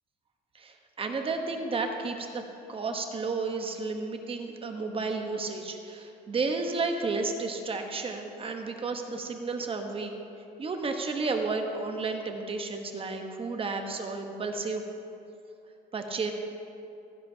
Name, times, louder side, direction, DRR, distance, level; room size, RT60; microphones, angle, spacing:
voice 1, 0.5-2.4 2.7-10.1 10.6-14.8 15.9-16.3, right 3 dB, 35° right, 4 dB, 1.0 m, -32 dB
17.0 x 10.5 x 2.8 m, 2.7 s
cardioid pair, 110°, 17 cm